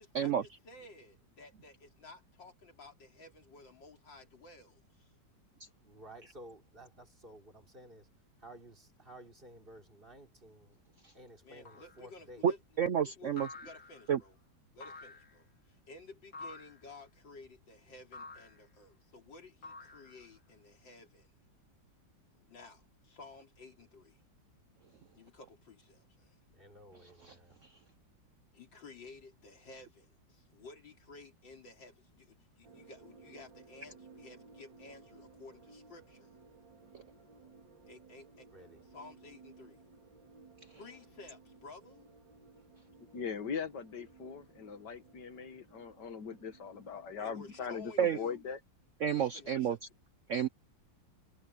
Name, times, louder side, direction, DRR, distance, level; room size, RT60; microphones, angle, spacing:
voice 1, 0.0-5.1 11.4-12.6 13.0-14.4 14.7-21.3 22.3-24.2 25.1-26.4 28.5-36.3 37.9-38.5 38.8-39.8 40.7-42.1 47.2-48.4 49.1-49.8, left 3 dB, 85° left, 4.0 m, -54 dB
voice 2, 5.8-8.1 8.4-10.7 11.1-12.4 26.5-27.6 38.5-38.8, right 1 dB, 30° right, 3.7 m, -54 dB
sound 1, 11.7-12.1 13.4-14.1 14.8-15.4 16.3-16.9 18.1-18.6 19.6-20.4, left 3 dB, 50° left, 3.3 m, -49 dB
voice 3, 12.4-13.5 14.1-14.2 27.2-27.3 36.9-37.0 48.0-48.2 49.0-49.8 50.3-50.5, right 8 dB, 60° right, 0.8 m, -30 dB
sound 2, 32.6-48.0, right 4 dB, 85° right, 3.8 m, -59 dB
voice 4, 43.1-48.6, left 6 dB, 70° left, 2.1 m, -40 dB
omnidirectional pair, 2.0 m